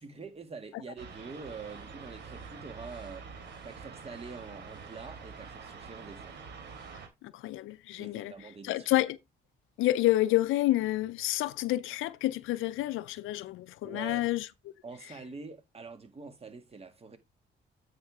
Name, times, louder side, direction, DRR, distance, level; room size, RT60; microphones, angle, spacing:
voice 1, 0.0-6.4 8.0-8.9 13.8-14.2 14.8-17.2, right 4 dB, 30° right, 2.0 m, -45 dB
sound 1, 1.0-7.1, right 5 dB, 60° right, 2.8 m, -46 dB
voice 2, 7.3-8.3 8.7-9.2 9.8-14.5, left 16 dB, 85° left, 0.5 m, -29 dB
9.0 x 5.5 x 3.5 m
cardioid pair, 90°, 20 cm